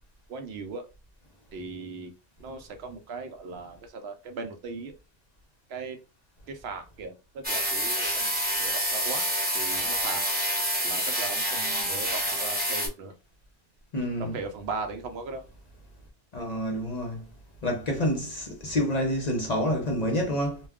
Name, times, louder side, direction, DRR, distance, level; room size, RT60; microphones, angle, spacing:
voice 1, 0.3-0.8 1.5-2.1 2.4-4.9 5.7-6.0 6.5-8.3 8.6-9.3 9.5-10.2 10.8-13.1 14.2-15.4, right 4 dB, 70° right, 0.8 m, -38 dB
sound 1, 7.4-12.9, equal, 10° right, 0.7 m, -28 dB
voice 2, 13.9-14.4 16.3-17.2 17.6-20.6, equal, 45° left, 0.6 m, -28 dB
2.3 x 2.2 x 3.5 m
omnidirectional pair, 1.2 m